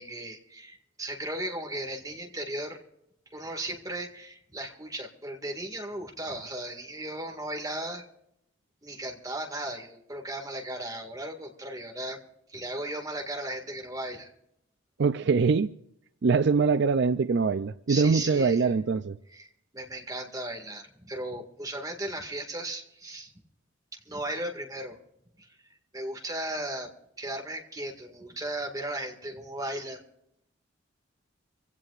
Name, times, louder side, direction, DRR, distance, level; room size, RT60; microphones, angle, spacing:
voice 1, 0.0-2.8 3.3-8.1 8.8-12.2 12.5-14.3 17.9-18.7 19.3-23.3 23.9-25.0 25.4-25.5 25.9-26.9 27.2-30.0, right 1 dB, 20° right, 2.0 m, -36 dB
voice 2, 15.0-15.7 16.2-19.2, right 5 dB, 60° right, 0.4 m, -23 dB
25.5 x 16.5 x 2.5 m
head